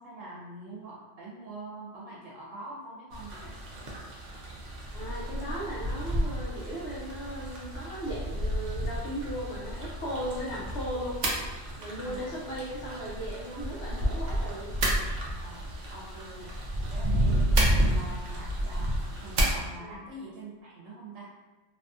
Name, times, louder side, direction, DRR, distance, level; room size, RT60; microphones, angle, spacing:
voice 1, 0.0-3.9 11.3-11.4 12.0-12.4 15.4-18.9 19.2-21.3, right 1 dB, 90° right, -5 dB, 1.0 m, -45 dB
sound 1, 3.1-19.6, right 1 dB, 55° right, 0.5 m, -31 dB
voice 2, 4.9-11.2 11.8-14.8 19.8-20.0, equal, 60° left, -5 dB, 0.8 m, -37 dB
2.7 x 2.3 x 2.5 m, 1.2 s
omnidirectional pair, 1.3 m